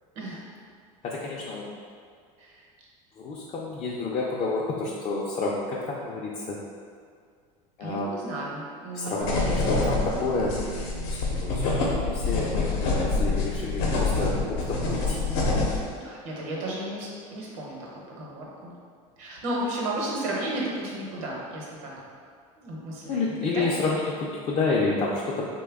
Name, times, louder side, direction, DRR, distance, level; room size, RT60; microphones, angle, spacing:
voice 1, 1.0-1.7 3.2-6.6 7.8-8.2 8.9-10.6 11.1-15.2 23.1-25.5, left 3 dB, 35° left, -5 dB, 0.4 m, -29 dB
voice 2, 7.8-9.6 15.1-15.3 16.0-18.7 19.2-21.9 22.6-23.7, right 1 dB, 75° right, -3 dB, 0.9 m, -34 dB
sound 1, 9.2-15.8, left 3 dB, 80° left, 0.7 m, -26 dB
3.2 x 2.2 x 3.4 m, 2.1 s
supercardioid pair, 120°, 17 cm